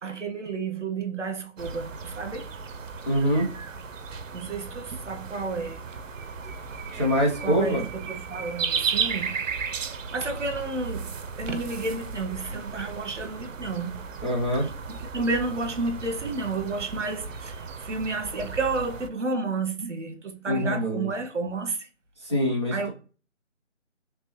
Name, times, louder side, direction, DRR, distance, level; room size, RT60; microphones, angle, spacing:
voice 1, 0.0-2.5 4.3-5.8 7.4-9.4 10.1-11.1 11.4-14.0 14.6-21.9 22.7-22.9, right 3 dB, 70° right, 0.9 m, -31 dB
sound 1, 1.6-19.1, right 5 dB, 90° right, 0.5 m, -35 dB
voice 2, 3.1-3.5 6.9-7.8 14.2-14.7 20.5-21.1 22.2-22.9, equal, 20° left, 0.7 m, -24 dB
3.2 x 3.1 x 3.0 m
figure-of-eight pair, 170°, 38 cm